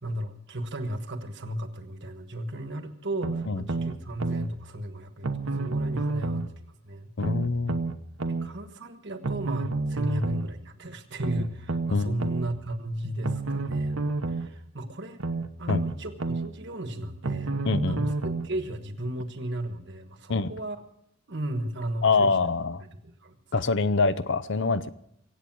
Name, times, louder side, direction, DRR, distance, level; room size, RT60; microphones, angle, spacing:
voice 1, 0.0-6.5 6.8-7.1 8.4-15.2 15.6-17.6 17.9-18.1 18.4-20.8 21.3-22.4 23.0-23.4, right 1 dB, 55° right, 8 dB, 1.3 m, -35 dB
sound 1, 3.2-4.5 5.2-6.5 7.2-8.5 9.2-10.5 11.2-12.5 13.2-14.5 15.2-16.5 17.2-18.5 19.2-19.3, right 3 dB, 70° right, 1.0 m, -29 dB
voice 2, 7.2-7.8 11.9-12.3 15.7-15.8 17.6-18.1 20.3-20.5 22.0-22.8 23.5-24.9, left 4 dB, 55° left, 14 dB, 0.6 m, -25 dB
23.0 x 8.6 x 6.1 m, 0.76 s
head